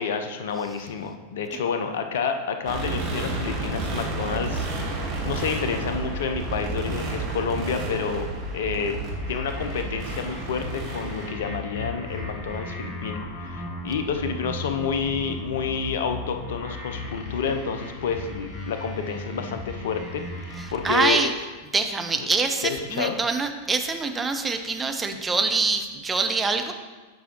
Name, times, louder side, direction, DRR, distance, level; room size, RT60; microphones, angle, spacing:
voice 1, 0.0-4.7 5.2-9.0 9.3-21.2 22.6-23.2, left 6 dB, 60° left, 7 dB, 0.6 m, -29 dB
sound 1, 2.7-11.3, right 2 dB, 35° right, 1.7 m, -31 dB
sound 2, 9.1-21.1, left 1 dB, 35° left, 1.2 m, -36 dB
voice 2, 20.6-21.3 21.7-26.7, right 4 dB, 15° right, 5 dB, 0.6 m, -25 dB
9.3 x 5.5 x 3.0 m, 1.3 s
figure-of-eight pair, 90°, 0 cm